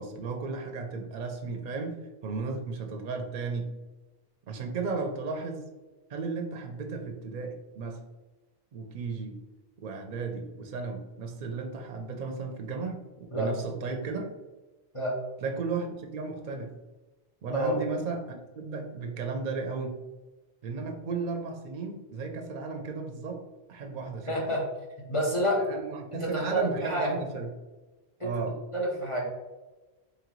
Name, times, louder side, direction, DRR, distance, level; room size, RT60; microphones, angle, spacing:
voice 1, 0.0-3.7 4.5-5.7 6.1-8.0 8.7-9.4 9.8-14.3 15.4-16.8 17.4-20.0 20.6-23.4 23.7-24.4 25.6-27.5 28.2-28.6, right 4 dB, 55° right, 4 dB, 0.6 m, -34 dB
voice 2, 24.3-24.7 25.1-25.6 26.1-27.1 28.2-28.4 28.7-29.3, equal, 35° left, -3 dB, 0.7 m, -28 dB
3.8 x 3.5 x 3.0 m, 1.1 s
omnidirectional pair, 1.0 m